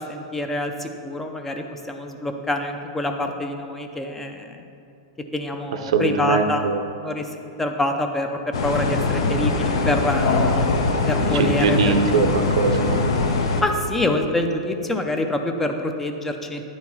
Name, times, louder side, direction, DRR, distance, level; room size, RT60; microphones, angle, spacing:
voice 1, 0.0-4.6 5.3-6.6 7.0-7.3 7.6-10.8 11.1-12.0 13.6-16.6, left 1 dB, 10° left, 4 dB, 0.4 m, -26 dB
voice 2, 5.9-6.8 11.2-13.0, right 5 dB, 85° right, 6 dB, 0.6 m, -21 dB
sound 1, 8.5-13.6, left 3 dB, 75° left, 0.8 m, -22 dB
9.4 x 4.6 x 4.1 m, 2.6 s
supercardioid pair, 150°, 3 cm